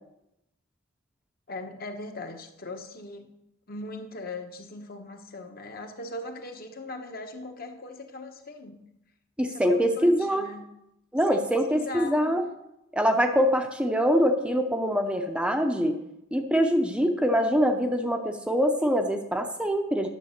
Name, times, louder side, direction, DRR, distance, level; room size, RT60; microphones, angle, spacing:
voice 1, 1.5-3.3 3.7-8.9 9.4-10.7 11.3-12.2, left 2 dB, 45° left, 5 dB, 1.2 m, -39 dB
voice 2, 9.4-10.5 11.1-12.4 12.9-16.0 16.3-20.1, equal, 5° right, 5 dB, 0.7 m, -24 dB
10.5 x 7.3 x 6.6 m, 0.85 s
head